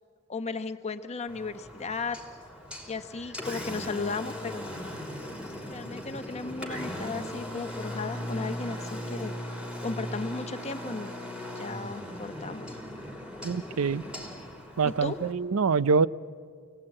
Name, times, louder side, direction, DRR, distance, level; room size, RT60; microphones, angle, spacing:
voice 1, 0.3-2.2 2.9-4.7 5.4-9.3 9.8-11.1 11.5-12.7 14.8-15.2, left 4 dB, 30° left, 8 dB, 1.0 m, -35 dB
Engine, 1.3-15.3, left 1 dB, 5° right, 3.2 m, -38 dB
voice 2, 13.4-14.0 14.8-16.1, right 5 dB, 70° right, 18 dB, 0.5 m, -25 dB
28.0 x 18.0 x 8.8 m, 2.1 s
head